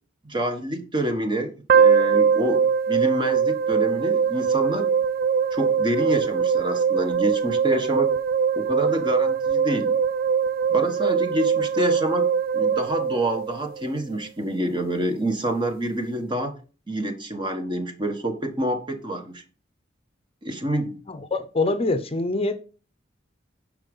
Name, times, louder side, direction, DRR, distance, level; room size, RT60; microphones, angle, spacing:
voice 1, 0.2-4.9 5.5-8.1 8.5-10.0 10.7-16.5 16.9-19.4 20.4-21.0, right 1 dB, 25° right, 1.5 m, -27 dB
sound 1, 1.7-13.9, right 6 dB, 50° right, 0.4 m, -22 dB
voice 2, 21.1-22.6, left 2 dB, 30° left, 0.8 m, -24 dB
10.5 x 5.1 x 5.5 m
head